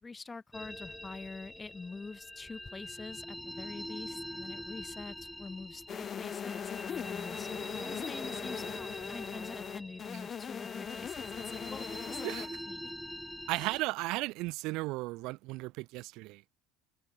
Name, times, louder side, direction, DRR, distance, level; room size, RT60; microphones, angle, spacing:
voice 1, 0.0-7.5 7.8-12.9, left 4 dB, 20° left, 1.9 m, -45 dB
sound 1, 0.5-13.8, left 1 dB, 5° left, 0.8 m, -44 dB
sound 2, 5.9-12.5, left 8 dB, 40° left, 0.3 m, -40 dB
voice 2, 13.5-16.4, right 22 dB, 65° right, 0.5 m, -35 dB
supercardioid pair, 90°, 0 cm